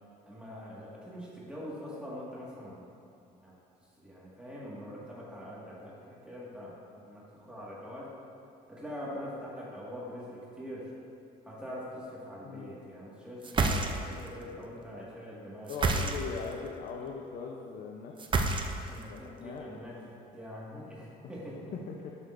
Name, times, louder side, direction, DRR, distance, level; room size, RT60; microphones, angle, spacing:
voice 1, 0.3-3.0 3.4-3.5 4.0-8.1 8.7-10.9 11.4-15.7 18.9-21.7, equal, 5° right, -7 dB, 1.8 m, -43 dB
sound 1, 13.4-14.3 15.7-16.5 18.2-19.0, right 3 dB, 30° right, 0.6 m, -28 dB
voice 2, 15.7-18.1 19.1-19.7 22.0-22.1, left 5 dB, 60° left, 0 dB, 0.7 m, -40 dB
11.0 x 6.4 x 2.6 m, 2.5 s
cardioid pair, 110°, 17 cm